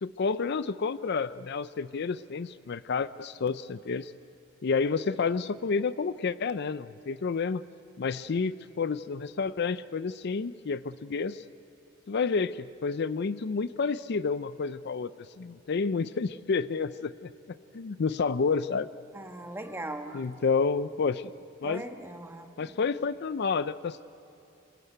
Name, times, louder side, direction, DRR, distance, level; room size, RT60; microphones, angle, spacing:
voice 1, 0.0-4.1 4.6-7.6 8.0-11.4 12.1-15.1 15.4-17.3 17.7-18.9 20.1-21.3 21.6-21.8 22.6-24.0, left 5 dB, 55° left, 15 dB, 0.5 m, -30 dB
voice 2, 19.1-20.2 21.6-22.8, right 1 dB, 10° right, 5 dB, 1.3 m, -40 dB
26.0 x 14.5 x 9.3 m, 2.9 s
head